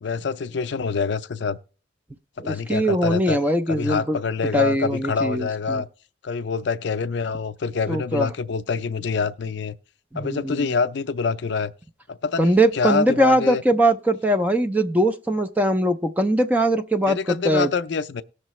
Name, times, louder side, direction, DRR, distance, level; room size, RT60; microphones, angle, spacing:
voice 1, 0.0-1.6 2.4-3.4 3.7-5.9 6.2-9.7 10.2-11.7 12.1-13.6 17.1-18.2, left 5 dB, 60° left, 0.4 m, -26 dB
voice 2, 2.4-4.2 4.5-5.8 7.9-8.3 10.1-10.7 12.4-17.7, right 1 dB, 10° right, 0.4 m, -21 dB
18.5 x 6.5 x 3.1 m
head